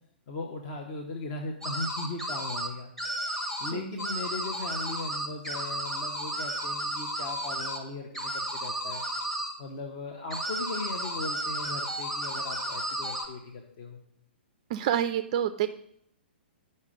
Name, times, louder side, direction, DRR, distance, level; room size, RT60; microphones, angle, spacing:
voice 1, 0.3-2.9 3.6-9.0 9.6-14.0, left 3 dB, 35° left, 2 dB, 0.9 m, -38 dB
sound 1, 1.6-2.7 3.0-3.7 4.0-7.8 8.1-9.5 10.3-13.3, right 1 dB, 5° left, 1.1 m, -33 dB
voice 2, 3.7-4.0 14.7-15.7, right 10 dB, 40° right, 11 dB, 0.4 m, -28 dB
9.6 x 5.4 x 5.2 m, 0.75 s
figure-of-eight pair, 115°, 6 cm